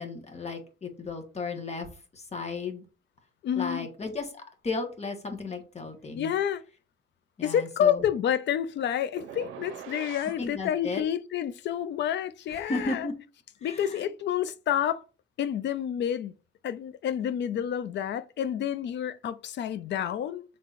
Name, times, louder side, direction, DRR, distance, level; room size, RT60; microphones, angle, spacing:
voice 1, 0.0-2.8 3.6-6.3 7.4-8.0 10.4-11.0 12.5-13.1 13.6-14.1, left 3 dB, 35° left, 1.4 m, -35 dB
voice 2, 3.4-3.9 6.2-6.6 7.4-13.1 13.6-15.0 15.4-16.3 16.6-20.4, left 9 dB, 65° left, 0.5 m, -29 dB
sound 1, 9.2-10.4, right 9 dB, 85° right, 0.6 m, -42 dB
5.7 x 3.5 x 2.5 m
cardioid pair, 90°, 20 cm